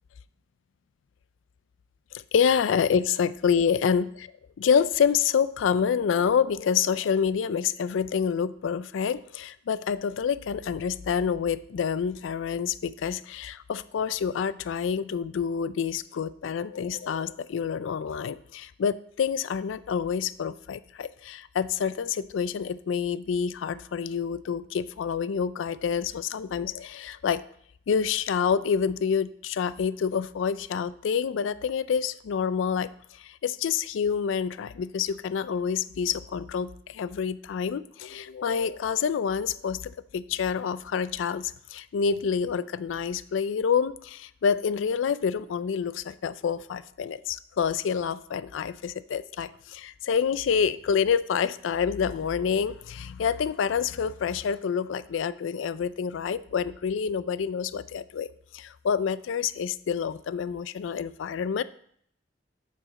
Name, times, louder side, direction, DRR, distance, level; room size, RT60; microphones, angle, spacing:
voice 1, 2.1-4.1 4.6-27.5 27.9-58.3 58.5-61.6, left 7 dB, 80° left, 16 dB, 0.4 m, -27 dB
8.8 x 7.0 x 4.0 m, 0.66 s
head